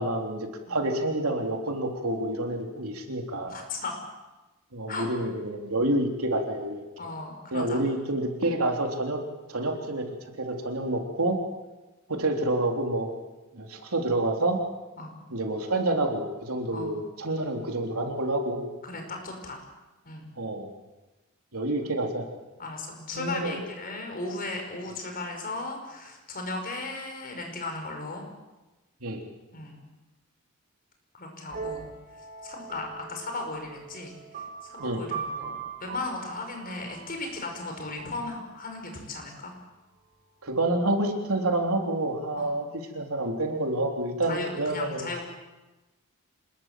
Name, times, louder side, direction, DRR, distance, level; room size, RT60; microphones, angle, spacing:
voice 1, 0.0-3.5 4.7-6.8 7.5-9.2 9.5-10.1 10.4-11.4 12.1-13.2 13.5-14.6 15.3-18.7 20.4-20.7 21.5-22.3 23.1-23.6 29.0-29.2 34.8-35.0 40.4-45.1, right 1 dB, 80° right, 2 dB, 3.5 m, -28 dB
voice 2, 3.4-4.0 4.9-5.1 7.0-7.8 15.0-15.2 16.7-17.0 18.8-19.6 20.0-20.3 21.8-21.9 22.6-28.2 29.5-29.8 31.2-31.9 32.4-34.1 34.6-35.5 35.8-39.5 42.3-42.5 44.3-45.2, left 2 dB, 40° left, 3 dB, 5.7 m, -36 dB
sound 1, 31.5-39.1, right 5 dB, 45° right, 6.2 m, -41 dB
26.5 x 20.5 x 7.6 m, 1.1 s
head